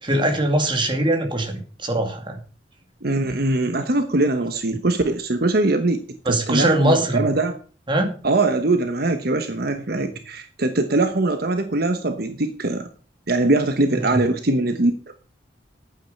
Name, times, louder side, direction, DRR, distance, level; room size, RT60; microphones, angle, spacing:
voice 1, 0.0-2.4 6.3-7.3 7.9-8.1 14.0-14.2, right 1 dB, 25° right, 5 dB, 2.4 m, -21 dB
voice 2, 3.0-7.6 8.2-12.9 13.3-15.1, right 2 dB, 60° right, 7 dB, 1.1 m, -22 dB
11.5 x 9.1 x 5.4 m, 0.39 s
head